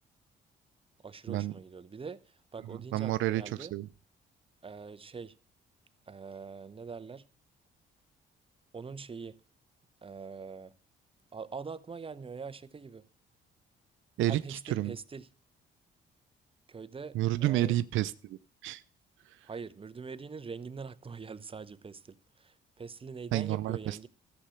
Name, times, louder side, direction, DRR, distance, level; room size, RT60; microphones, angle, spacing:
voice 1, 1.0-3.7 4.6-5.3 6.1-7.2 8.7-9.4 10.0-10.7 11.3-13.0 14.3-15.3 16.7-17.2 17.4-17.8 19.4-24.1, right 5 dB, 25° right, 0.8 m, -43 dB
voice 2, 2.7-3.9 14.2-14.9 17.1-18.8 19.3-19.4 23.3-24.0, right 14 dB, 80° right, 0.5 m, -30 dB
13.5 x 7.7 x 5.8 m
cardioid pair, 90°, 20 cm